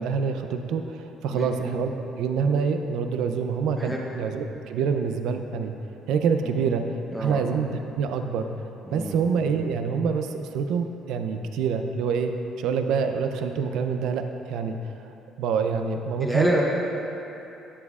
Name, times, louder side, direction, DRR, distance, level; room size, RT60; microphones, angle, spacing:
voice 1, 0.0-5.7 6.1-6.8 7.2-8.5 8.9-12.3 12.6-14.8 15.4-16.6, right 6 dB, 65° right, 7 dB, 0.4 m, -26 dB
voice 2, 7.1-7.4 8.8-9.2 16.2-16.6, equal, ahead, -3 dB, 0.6 m, -27 dB
11.5 x 7.2 x 2.4 m, 2.9 s
cardioid pair, 180°, 0 cm